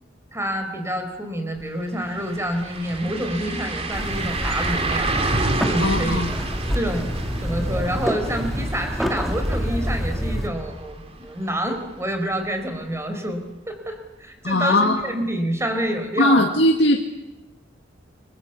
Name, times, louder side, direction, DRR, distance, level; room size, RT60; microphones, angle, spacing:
voice 1, 0.3-5.3 5.6-6.2 6.7-7.1 7.4-16.5, equal, 15° right, 6 dB, 4.5 m, -28 dB
sound 1, 1.6-1.7 2.0-11.8 12.1-12.2 15.0-15.1, right 2 dB, 30° right, 2.8 m, -30 dB
sound 2, 3.9-10.5, equal, ahead, 2.4 m, -27 dB
voice 2, 5.8-6.3 14.4-15.0 16.2-17.0, left 1 dB, 70° left, 2 dB, 2.1 m, -19 dB
29.0 x 23.5 x 8.3 m, 0.98 s
head